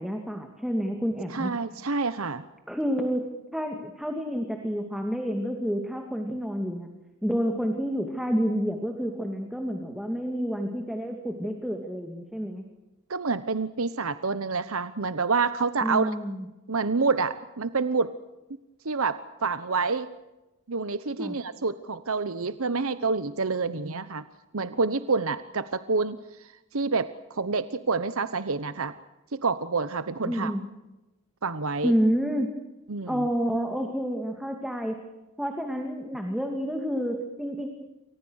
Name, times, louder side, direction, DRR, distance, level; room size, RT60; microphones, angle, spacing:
voice 1, 0.0-1.5 2.7-6.9 7.2-12.6 15.8-16.4 21.2-21.4 30.2-30.6 31.8-32.5 33.1-35.0 35.4-37.7, equal, ahead, 3 dB, 2.5 m, -29 dB
voice 2, 1.3-2.4 13.1-16.1 16.7-18.1 18.8-20.1 20.7-24.2 24.5-26.2 26.7-28.9 29.3-30.5 31.4-31.9 32.9-33.3, right 4 dB, 75° right, 12 dB, 1.0 m, -28 dB
29.5 x 24.0 x 6.5 m, 1.0 s
head